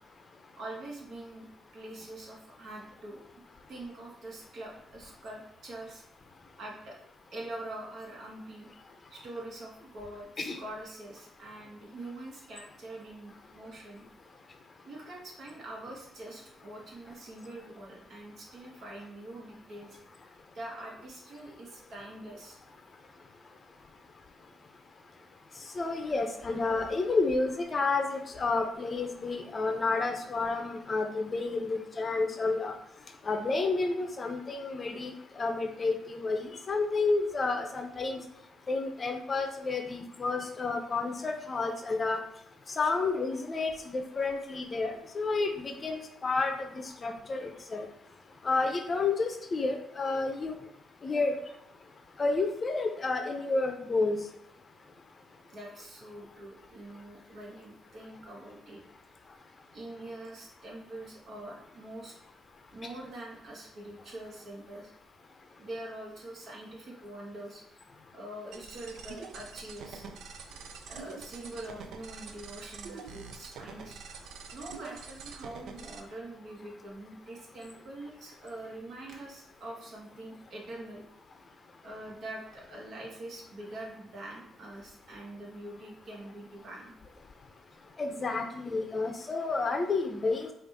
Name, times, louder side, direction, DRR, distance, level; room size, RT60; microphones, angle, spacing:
voice 1, 0.6-3.2 3.7-6.0 6.6-7.0 7.3-8.7 9.1-14.0 14.9-20.0 20.5-22.6 55.5-58.8 59.7-62.1 62.7-64.9 65.6-67.8 68.1-70.0 70.9-74.2 74.5-81.0 81.8-86.9, right 1 dB, 60° right, -1 dB, 1.3 m, -44 dB
voice 2, 25.8-32.7 33.3-38.2 38.7-42.2 42.8-47.9 48.4-50.5 51.0-51.4 52.2-54.2 88.0-90.5, left 3 dB, 35° left, 5 dB, 0.6 m, -30 dB
sound 1, 68.5-76.0, right 5 dB, 80° right, 0.4 m, -45 dB
5.0 x 2.5 x 3.5 m, 0.76 s
cardioid pair, 90°, 0 cm